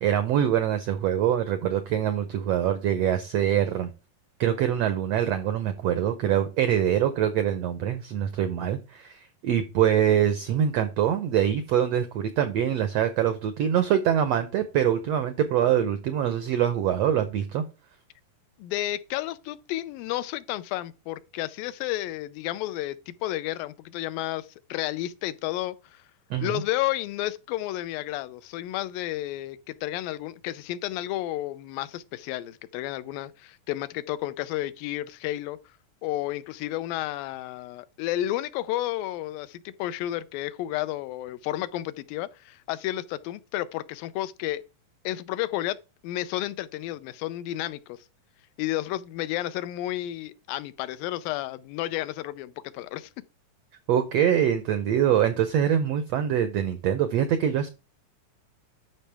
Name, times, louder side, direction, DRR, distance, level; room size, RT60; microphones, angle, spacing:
voice 1, 0.0-3.9 4.4-17.6 26.3-26.6 53.9-57.7, right 10 dB, 85° right, 1.4 m, -24 dB
voice 2, 18.6-26.0 26.4-35.6 36.0-44.6 45.0-45.8 46.0-48.0 48.6-53.1, left 15 dB, 90° left, 2.4 m, -32 dB
12.0 x 5.5 x 3.4 m
omnidirectional pair, 4.0 m